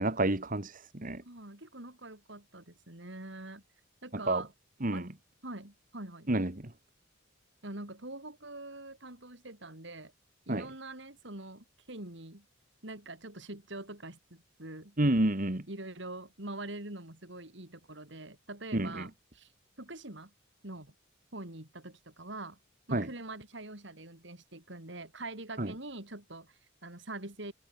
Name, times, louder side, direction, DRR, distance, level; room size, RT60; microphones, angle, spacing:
voice 1, 0.0-1.2 4.3-4.4 4.8-5.1 6.3-6.5 10.5-10.6 15.0-15.6 18.7-19.1 22.9-23.1 25.6-25.7, right 1 dB, 40° right, 1.8 m, -29 dB
voice 2, 1.2-3.6 4.0-4.5 4.9-5.1 5.4-6.3 7.6-10.1 10.5-12.4 12.8-15.0 15.7-19.5 19.8-20.3 20.6-20.9 21.3-22.6 22.9-27.5, right 2 dB, 60° right, 4.3 m, -44 dB
head